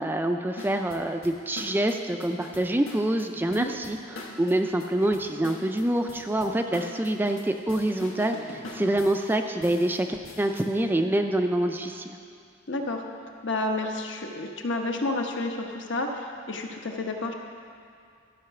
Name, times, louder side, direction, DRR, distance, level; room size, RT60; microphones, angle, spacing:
voice 1, 0.0-12.2, right 1 dB, 10° right, 5 dB, 0.3 m, -26 dB
sound 1, 0.6-10.7, left 2 dB, 85° left, 1.4 m, -44 dB
voice 2, 12.7-13.0 13.4-17.3, left 2 dB, 65° left, 2 dB, 1.0 m, -30 dB
13.0 x 5.7 x 6.9 m, 2.4 s
head